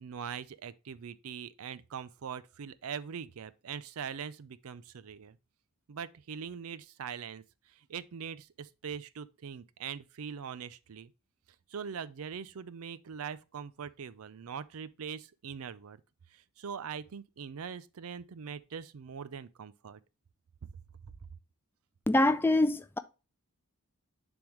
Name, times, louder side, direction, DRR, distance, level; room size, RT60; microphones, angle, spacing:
voice 1, 0.0-5.4 5.9-11.1 11.7-16.0 16.3-20.0, right 7 dB, 70° right, 0.5 m, -42 dB
voice 2, 22.1-23.0, left 1 dB, 10° left, 0.3 m, -25 dB
10.5 x 3.5 x 3.0 m
head